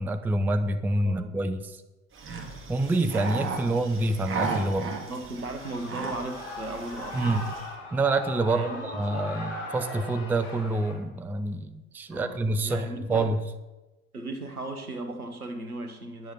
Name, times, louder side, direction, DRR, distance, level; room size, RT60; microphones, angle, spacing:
voice 1, 0.0-1.8 2.7-5.0 7.1-7.4 7.9-13.4, right 2 dB, 5° right, 10 dB, 0.4 m, -27 dB
voice 2, 1.0-1.4 3.6-3.7 4.7-7.2 8.5-9.4 12.1-13.3 14.1-16.3, right 2 dB, 85° right, 7 dB, 1.3 m, -37 dB
sound 1, 2.1-7.7, right 4 dB, 30° right, 2.0 m, -35 dB
Shout / Cheering, 5.5-10.9, left 2 dB, 55° left, 3.6 m, -39 dB
10.5 x 7.7 x 5.6 m, 1.1 s
figure-of-eight pair, 75°, 43 cm